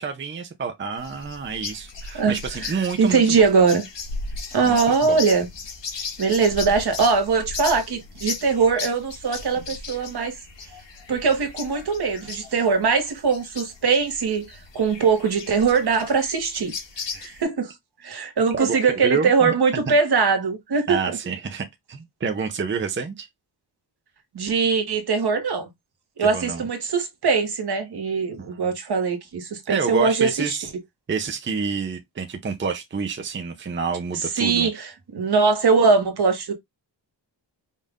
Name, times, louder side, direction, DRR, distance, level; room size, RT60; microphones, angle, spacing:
voice 1, 0.0-3.4 4.6-5.2 18.5-19.5 19.9-20.0 20.9-23.3 26.2-26.6 28.4-28.5 29.7-30.7 31.1-34.7, right 5 dB, 25° right, 0.6 m, -28 dB
sound 1, 1.0-17.4, left 4 dB, 70° left, 1.8 m, -36 dB
voice 2, 2.1-3.8 4.5-5.5 6.2-10.3 11.1-14.5 14.7-16.7 17.2-17.7 18.0-21.2 24.3-25.7 26.2-30.6 34.4-36.5, right 5 dB, 60° right, 1.4 m, -21 dB
5.5 x 2.6 x 3.5 m
wide cardioid pair, 140°, 44 cm